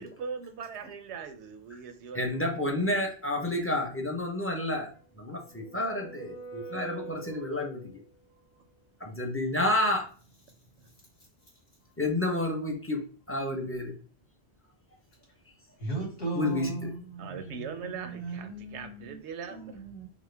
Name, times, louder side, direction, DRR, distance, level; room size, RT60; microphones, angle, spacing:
voice 1, 0.0-3.1 10.8-10.9 17.2-19.8, right 6 dB, 90° right, 9 dB, 0.9 m, -41 dB
voice 2, 2.1-8.0 9.0-10.1 12.0-13.0 13.3-13.9 16.3-16.9 19.4-19.6, left 1 dB, 15° left, 1 dB, 0.7 m, -30 dB
sound 1, 5.1-8.1, right 4 dB, 85° left, 1.2 m, -45 dB
voice 3, 15.8-19.2 19.5-20.1, right 3 dB, 60° left, -5 dB, 2.3 m, -37 dB
6.0 x 2.1 x 3.3 m, 0.42 s
omnidirectional pair, 1.1 m